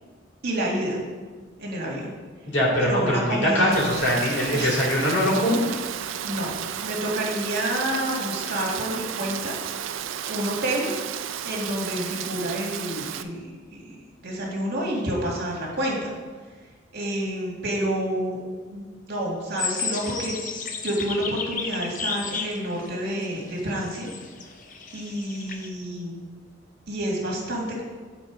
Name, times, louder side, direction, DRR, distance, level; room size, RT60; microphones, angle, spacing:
voice 1, 0.4-1.0 1.6-2.1 2.8-3.7 4.5-4.8 6.2-6.6 6.8-9.6 10.3-10.9 11.4-16.1 16.9-18.4 18.7-24.1 24.9-26.1 26.9-27.8, right 1 dB, 55° right, -2 dB, 1.8 m, -29 dB
voice 2, 2.5-5.6, equal, 70° left, -4 dB, 2.4 m, -22 dB
Rain, 3.7-13.2, right 9 dB, 85° right, 0.4 m, -33 dB
sound 1, 19.6-25.7, left 5 dB, 45° left, 0.6 m, -33 dB
9.5 x 4.0 x 4.9 m, 1.4 s
head